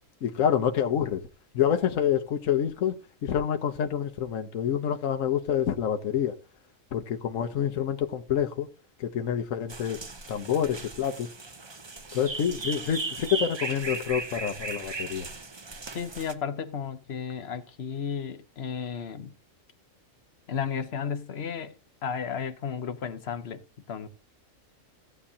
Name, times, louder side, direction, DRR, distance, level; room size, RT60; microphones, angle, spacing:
voice 1, 0.2-1.2 1.5-2.9 3.2-6.3 6.9-8.7 9.0-10.0 10.3-11.3 12.1-15.3, left 9 dB, 75° left, 1.2 m, -27 dB
sound 1, 9.7-16.3, right 3 dB, 25° right, 0.6 m, -37 dB
voice 2, 15.9-19.3 20.5-21.7 22.0-23.6 23.9-24.1, left 7 dB, 55° left, 1.1 m, -33 dB
16.5 x 8.6 x 2.8 m
omnidirectional pair, 1.4 m